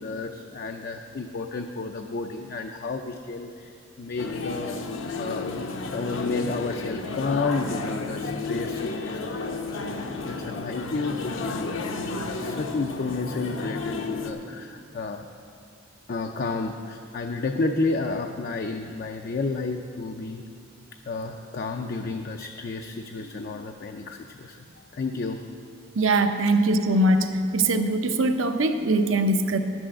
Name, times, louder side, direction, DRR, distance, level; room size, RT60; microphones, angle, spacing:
voice 1, 0.0-4.8 5.2-5.7 5.9-9.3 9.7-15.2 16.1-20.4 21.1-24.6 24.9-25.4, left 3 dB, 45° left, 4 dB, 0.4 m, -31 dB
sound 1, 4.2-14.3, left 3 dB, 65° left, 0.7 m, -32 dB
voice 2, 25.9-29.6, right 1 dB, 70° right, 8 dB, 0.7 m, -22 dB
10.5 x 6.2 x 7.7 m, 2.4 s
head